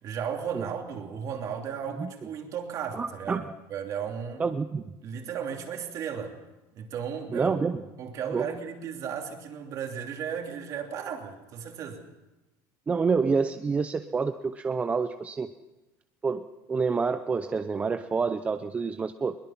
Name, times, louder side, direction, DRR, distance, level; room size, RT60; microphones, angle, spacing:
voice 1, 0.0-3.4 3.7-4.4 5.0-6.4 6.7-7.6 8.0-12.0, right 7 dB, 40° right, 3 dB, 2.9 m, -35 dB
voice 2, 2.9-3.4 4.4-4.8 7.3-7.8 8.3-8.5 12.9-15.5 16.2-19.4, right 5 dB, 15° right, 9 dB, 0.6 m, -28 dB
22.0 x 21.0 x 5.9 m, 1.0 s
cardioid pair, 155°, 9 cm